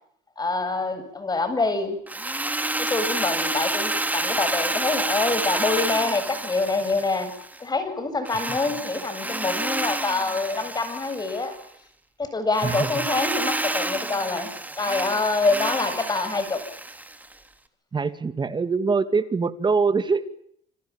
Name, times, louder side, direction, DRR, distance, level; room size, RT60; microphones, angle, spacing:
voice 1, 0.4-2.0 2.8-7.3 7.6-11.6 12.2-14.5 14.8-16.6, left 3 dB, 25° left, 10 dB, 7.9 m, -26 dB
Drill, 2.1-7.6 8.3-11.6 12.5-17.3, right 2 dB, 10° right, 3.5 m, -29 dB
voice 2, 12.6-13.1 17.9-20.3, right 4 dB, 25° right, 11 dB, 2.5 m, -24 dB
29.0 x 26.5 x 7.3 m, 0.68 s
cardioid pair, 110°, 17 cm